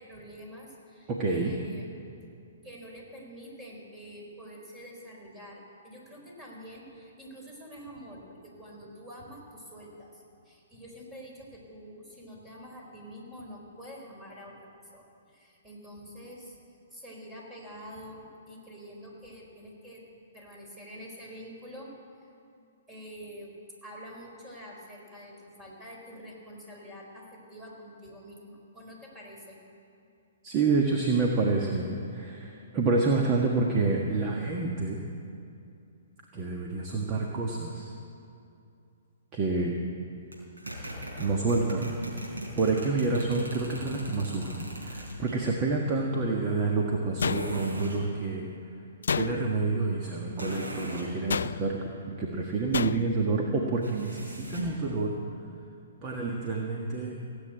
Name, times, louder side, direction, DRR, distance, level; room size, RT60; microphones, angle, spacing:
voice 1, 0.0-1.8 2.6-16.6 16.9-20.0 20.3-21.9 22.2-22.3 22.9-23.5 23.8-29.6, equal, 15° right, -2 dB, 4.4 m, -46 dB
voice 2, 1.1-1.5 30.4-35.0 36.3-37.9 39.3-39.7 41.2-41.8 42.5-48.5 49.1-51.8 52.2-55.1 56.0-57.2, right 3 dB, 30° right, 0 dB, 1.5 m, -28 dB
sound 1, 40.3-45.4 47.2-48.0 50.4-51.1 53.8-54.8, right 1 dB, 85° right, 4.7 m, -38 dB
sound 2, 47.2-47.9 49.0-49.7 51.3-51.9 52.7-53.3, left 6 dB, 70° left, 0.3 m, -31 dB
17.0 x 8.6 x 8.9 m, 2.5 s
hypercardioid pair, 125°, 0 cm